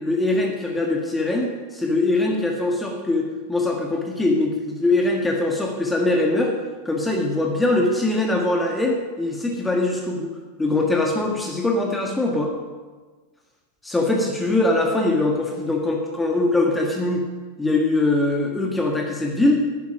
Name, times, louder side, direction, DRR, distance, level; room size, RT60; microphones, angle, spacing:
voice 1, 0.0-6.5 6.9-10.3 10.6-12.5 13.8-17.2 17.6-19.6, left 2 dB, 10° left, 0 dB, 1.7 m, -22 dB
11.0 x 9.3 x 5.7 m, 1.4 s
figure-of-eight pair, 90°, 0 cm